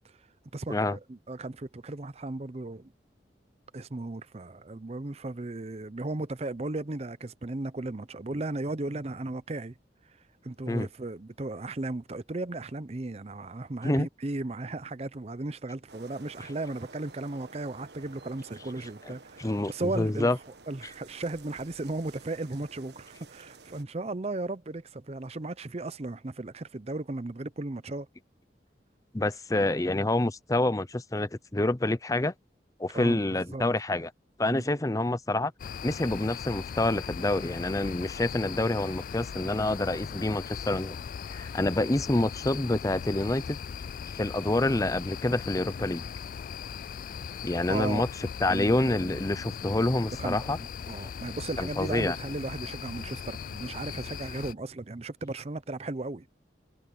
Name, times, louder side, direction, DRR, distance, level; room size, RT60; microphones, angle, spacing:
voice 1, 0.5-2.9 3.7-9.8 10.4-20.3 20.7-28.1 32.9-33.2 33.5-33.6 34.5-34.6 47.7-48.1 48.5-49.2 50.2-56.3, right 2 dB, 35° right, 0.7 m, -36 dB
sound 1, 15.9-23.8, right 3 dB, 75° right, 1.5 m, -52 dB
voice 2, 19.4-20.4 29.1-32.3 32.8-34.1 34.4-35.5 35.8-41.0 41.3-43.6 44.2-46.1 47.4-48.1 48.4-50.6 51.6-52.2, left 2 dB, 20° left, 0.6 m, -27 dB
sound 2, 35.6-54.5, left 7 dB, 50° left, 0.3 m, -39 dB
head